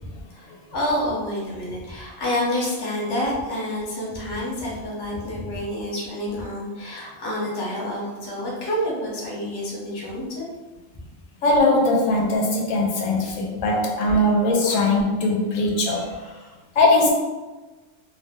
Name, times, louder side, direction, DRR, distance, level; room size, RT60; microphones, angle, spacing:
voice 1, 0.0-10.5 13.2-13.3 14.7-14.8 15.8-16.6, left 1 dB, 25° left, -5 dB, 0.6 m, -29 dB
voice 2, 11.4-16.1 16.8-17.1, left 2 dB, 90° left, -1 dB, 1.0 m, -20 dB
2.6 x 2.1 x 3.4 m, 1.2 s
omnidirectional pair, 1.3 m